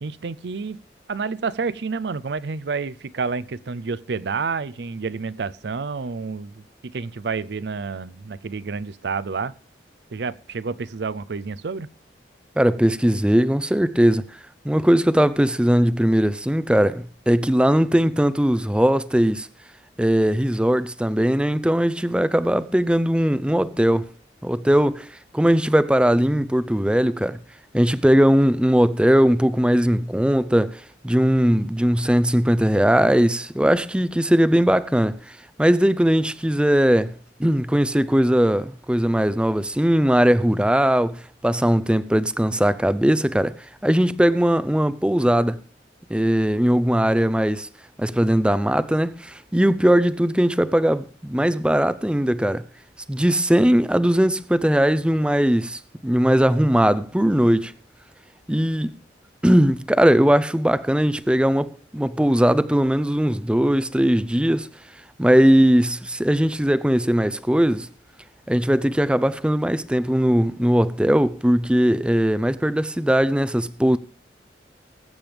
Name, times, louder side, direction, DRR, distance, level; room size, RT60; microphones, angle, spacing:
voice 1, 0.0-0.8 1.1-9.5 10.1-11.9, right 4 dB, 70° right, 0.5 m, -29 dB
voice 2, 12.6-14.3 14.6-19.5 20.0-24.1 24.4-25.1 25.3-27.4 27.7-37.1 37.4-43.5 43.8-45.6 46.1-47.7 48.0-52.6 53.1-57.7 58.5-58.9 59.4-64.7 65.2-67.9 68.5-74.0, equal, 5° right, 0.5 m, -19 dB
20.0 x 8.7 x 3.4 m
head